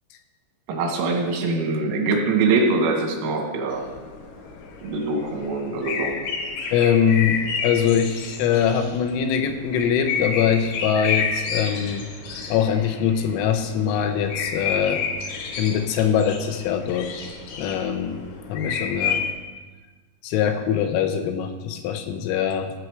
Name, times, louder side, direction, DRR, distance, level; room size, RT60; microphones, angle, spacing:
voice 1, 0.7-3.8 4.8-6.1, right 3 dB, 85° right, 1 dB, 4.5 m, -23 dB
sound 1, 3.7-19.3, left 6 dB, 65° left, 2.6 m, -31 dB
voice 2, 6.7-12.1 12.5-15.1 15.3-17.2 17.6-18.2 18.5-19.2 20.2-22.7, left 8 dB, 80° left, 7 dB, 3.3 m, -23 dB
16.5 x 6.8 x 4.8 m, 1.3 s
omnidirectional pair, 6.0 m